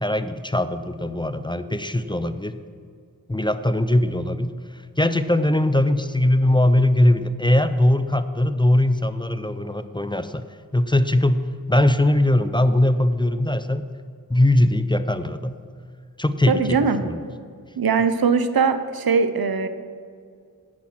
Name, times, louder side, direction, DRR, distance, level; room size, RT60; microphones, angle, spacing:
voice 1, 0.0-2.6 3.3-4.5 5.0-10.4 10.7-11.4 11.7-13.8 14.3-15.6 16.2-17.3, left 1 dB, 15° left, 11 dB, 0.5 m, -20 dB
voice 2, 16.5-17.0 17.8-19.7, right 5 dB, 85° right, 10 dB, 0.7 m, -20 dB
10.5 x 8.7 x 5.9 m, 2.2 s
wide cardioid pair, 55°, 35 cm